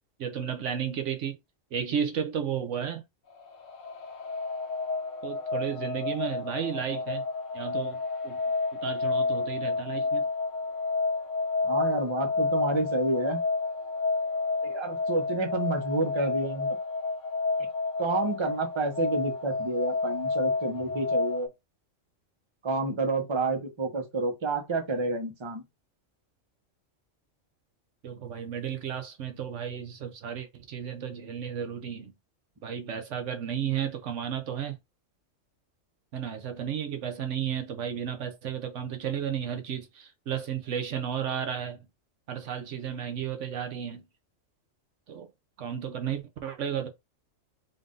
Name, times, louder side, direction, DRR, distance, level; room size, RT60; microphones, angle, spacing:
voice 1, 0.2-1.4 1.7-3.0 5.2-7.3 7.5-8.4 8.7-10.2 28.0-32.1 32.6-34.8 36.1-41.8 42.3-44.1 45.1-45.3 45.6-46.9, right 8 dB, 70° right, 1.0 m, -33 dB
sound 1, 3.3-21.5, left 3 dB, 75° left, 1.2 m, -30 dB
voice 2, 11.6-13.4 14.6-16.8 18.0-21.5 22.6-25.6, right 2 dB, 25° right, 0.9 m, -29 dB
3.9 x 2.5 x 3.7 m
omnidirectional pair, 1.3 m